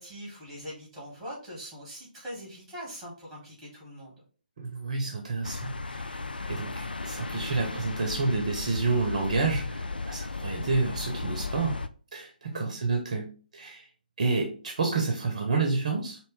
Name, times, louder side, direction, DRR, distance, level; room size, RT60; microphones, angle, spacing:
voice 1, 0.0-4.1 12.5-12.8, equal, 5° right, -3 dB, 1.6 m, -42 dB
voice 2, 4.6-6.2 6.5-11.8 12.1-13.3 13.5-13.8 14.2-16.2, right 3 dB, 45° right, 3 dB, 0.8 m, -29 dB
sound 1, 5.4-11.9, left 3 dB, 70° left, 0.4 m, -35 dB
4.3 x 3.0 x 3.2 m, 0.39 s
figure-of-eight pair, 140°, 5 cm